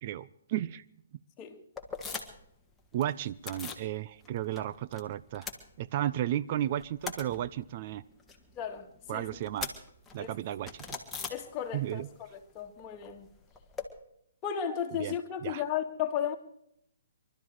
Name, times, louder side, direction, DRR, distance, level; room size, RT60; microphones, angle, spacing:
voice 1, 0.0-0.8 2.9-5.5 5.8-8.0 9.1-9.7 10.1-10.8 11.7-12.1 15.0-15.2 15.4-15.6, right 12 dB, 40° right, 0.5 m, -33 dB
sound 1, 1.8-2.5 2.8-3.9 4.2-5.0 5.3-6.3 6.6-12.0 12.2-13.9, left 5 dB, 10° left, 1.6 m, -42 dB
voice 2, 8.6-8.9 9.1-9.3 10.2-10.3 11.3-13.3 14.4-16.3, left 9 dB, 25° left, 2.0 m, -34 dB
23.5 x 12.5 x 4.8 m
hypercardioid pair, 145°, 0 cm